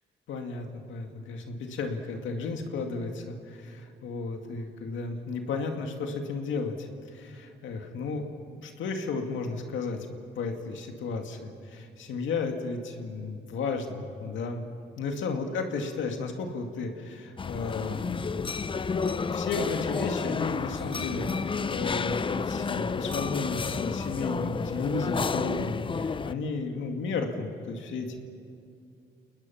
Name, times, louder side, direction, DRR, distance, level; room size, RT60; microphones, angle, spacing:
voice 1, 0.3-8.3 8.5-10.1 10.4-14.6 15.0-18.2 19.3-28.2, left 4 dB, 75° left, 4 dB, 2.3 m, -33 dB
sound 1, 17.4-26.3, left 5 dB, 25° left, 0.6 m, -31 dB
29.0 x 20.0 x 5.8 m, 2.5 s
cardioid pair, 90°, 20 cm